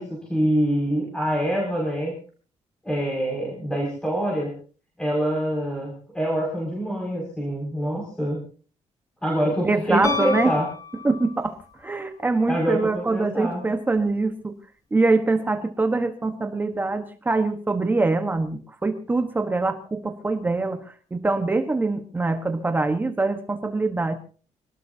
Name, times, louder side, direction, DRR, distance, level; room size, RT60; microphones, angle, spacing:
voice 1, 0.0-2.1 2.8-4.5 5.0-8.4 9.2-10.6 12.5-13.6, equal, 5° left, -3 dB, 6.0 m, -25 dB
voice 2, 9.6-10.5 11.0-14.5 14.9-24.1, right 3 dB, 15° right, 7 dB, 1.2 m, -24 dB
Piano, 10.0-11.6 14.0-14.1, left 5 dB, 30° left, 2.1 m, -31 dB
26.0 x 19.0 x 2.8 m, 0.40 s
wide cardioid pair, 180°, 12 cm